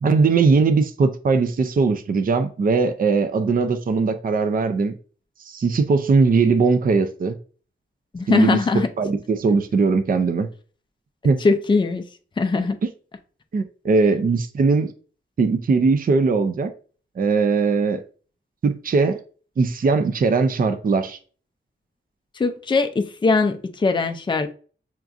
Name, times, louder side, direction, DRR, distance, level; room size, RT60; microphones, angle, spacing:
voice 1, 0.0-4.9 5.4-7.4 8.3-8.6 9.0-10.5 11.2-11.4 13.5-14.9 15.4-16.7 17.2-18.0 18.6-19.2 19.6-21.2, right 4 dB, 45° right, 0.4 m, -20 dB
voice 2, 8.1-8.9 11.4-12.0 12.4-12.8 22.3-24.5, left 4 dB, 20° left, 0.4 m, -21 dB
5.8 x 2.4 x 2.5 m
wide cardioid pair, 100°, 21 cm